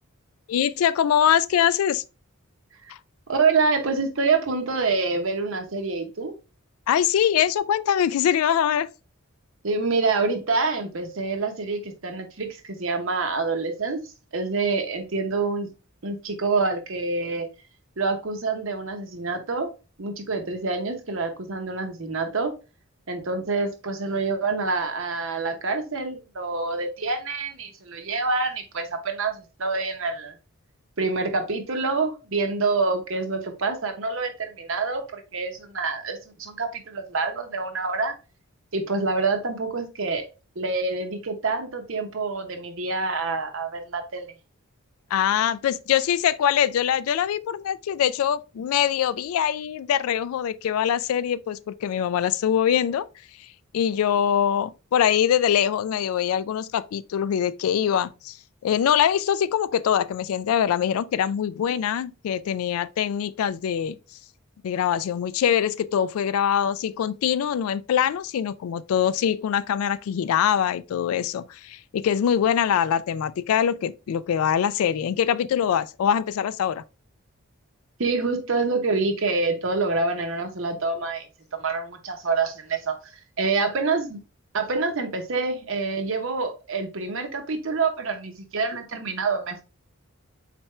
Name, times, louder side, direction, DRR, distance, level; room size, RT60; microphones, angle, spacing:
voice 1, 0.5-2.0 2.9-3.0 6.9-8.9 45.1-53.1 53.7-58.4 58.6-64.0 64.6-76.8, left 9 dB, 80° left, 0.3 m, -23 dB
voice 2, 3.3-6.3 9.6-14.0 14.3-15.7 16.0-17.5 18.0-19.7 20.0-22.5 23.1-30.3 31.0-38.1 38.7-40.2 40.6-44.3 78.0-83.0 83.4-84.2 84.5-89.6, right 4 dB, 65° right, 0.8 m, -26 dB
4.2 x 3.4 x 3.1 m
head